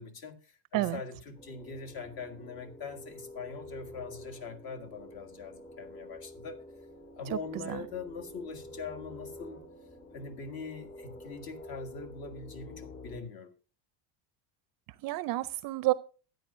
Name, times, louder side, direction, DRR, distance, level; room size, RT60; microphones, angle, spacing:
voice 1, 0.0-6.6 7.2-9.6 10.1-13.5, left 5 dB, 45° left, 1.8 m, -42 dB
sound 1, 1.3-13.2, left 1 dB, 20° left, 2.4 m, -48 dB
voice 2, 7.3-7.8 15.0-15.9, right 18 dB, 45° right, 0.5 m, -30 dB
13.5 x 9.4 x 2.6 m
cardioid pair, 145°, 50 cm